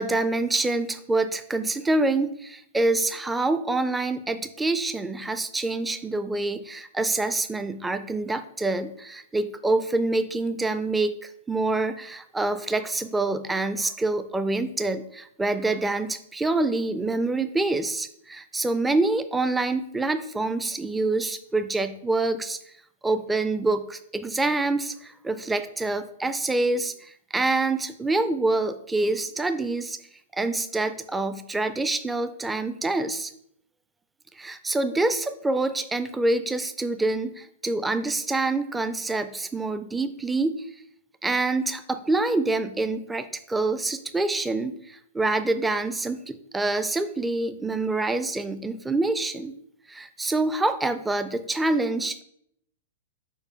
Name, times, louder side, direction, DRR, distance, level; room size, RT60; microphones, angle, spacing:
voice 1, 0.0-22.6 23.0-30.0 30.3-33.3 34.4-40.7 41.2-49.5 49.9-52.2, right 2 dB, 10° right, 11 dB, 0.4 m, -26 dB
4.9 x 4.5 x 4.6 m, 0.72 s
figure-of-eight pair, 105°, 0 cm